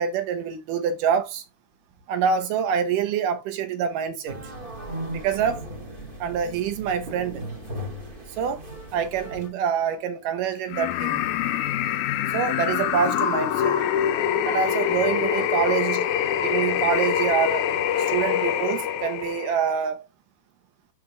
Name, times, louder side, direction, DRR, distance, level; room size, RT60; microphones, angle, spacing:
voice 1, 0.0-1.4 2.1-4.4 5.1-5.6 6.2-7.4 8.4-8.6 8.9-11.3 12.3-13.8 14.4-16.1 16.4-17.7 18.1-20.0, right 7 dB, 75° right, 2.5 m, -26 dB
sound 1, 4.3-9.5, right 1 dB, 20° right, 1.5 m, -37 dB
sound 2, 10.7-19.7, left 10 dB, 75° left, 1.9 m, -25 dB
11.5 x 4.3 x 2.3 m
omnidirectional pair, 3.9 m